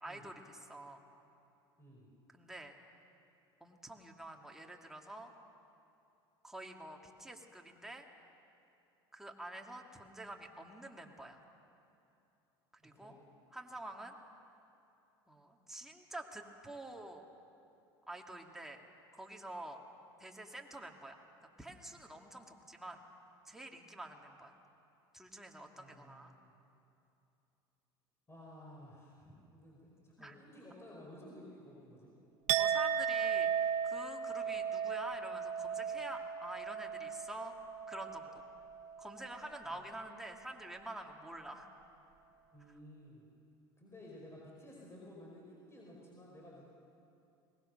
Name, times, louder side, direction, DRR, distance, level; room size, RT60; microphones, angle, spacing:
voice 1, 0.0-1.0 2.3-2.7 3.6-5.3 6.4-8.1 9.1-11.4 12.8-13.2 13.5-14.2 15.3-17.2 18.1-18.8 19.1-19.8 20.2-21.2 21.6-23.0 23.5-24.6 25.1-26.3 30.2-30.4 32.6-37.5 37.9-38.5 39.0-41.7, right 1 dB, 5° right, 1 dB, 2.3 m, -47 dB
voice 2, 12.8-13.2 25.8-26.5 28.3-32.1 39.6-39.8 42.5-43.2 43.8-46.6, left 1 dB, 20° left, -3 dB, 5.1 m, -54 dB
Chink clink, 32.5-38.4 38.7-39.1, right 8 dB, 60° right, 0.9 m, -35 dB
22.0 x 19.5 x 6.6 m, 2.7 s
hypercardioid pair, 80°, 14 cm